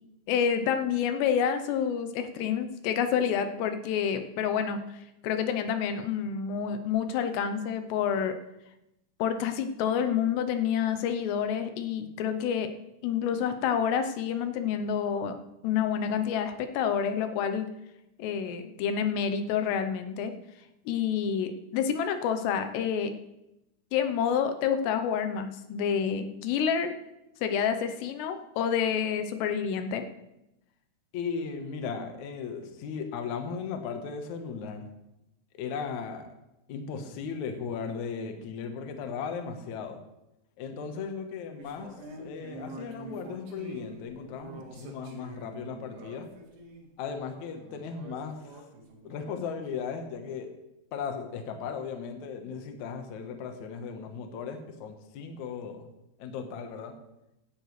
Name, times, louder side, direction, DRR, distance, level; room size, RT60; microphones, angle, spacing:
voice 1, 0.3-4.8 5.2-8.4 9.2-12.7 13.0-15.3 15.6-17.7 18.2-20.3 20.9-23.1 23.9-26.9 27.4-30.0, left 7 dB, 85° left, 8 dB, 3.0 m, -28 dB
voice 2, 31.1-34.9 35.5-36.3 36.7-40.0 40.6-46.3 47.0-48.6 49.0-50.5 50.9-55.9 56.2-56.9, left 6 dB, 65° left, 5 dB, 2.1 m, -36 dB
sound 1, 41.6-46.9 47.5-49.8, right 1 dB, 75° right, 3.9 m, -46 dB
16.5 x 11.5 x 3.3 m, 0.89 s
omnidirectional pair, 4.8 m